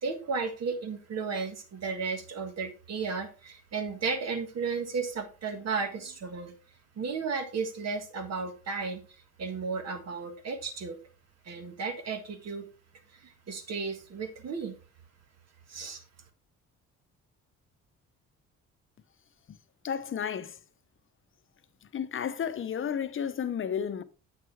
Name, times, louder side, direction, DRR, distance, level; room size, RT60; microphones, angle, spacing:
voice 1, 0.0-6.5 7.0-9.0 9.4-11.0 11.5-12.7 13.1-14.8 15.7-16.0, right 5 dB, 55° right, 1.7 m, -34 dB
voice 2, 19.8-20.6 21.8-24.0, left 8 dB, 45° left, 0.8 m, -32 dB
8.1 x 6.3 x 3.5 m
cardioid pair, 90°, 30 cm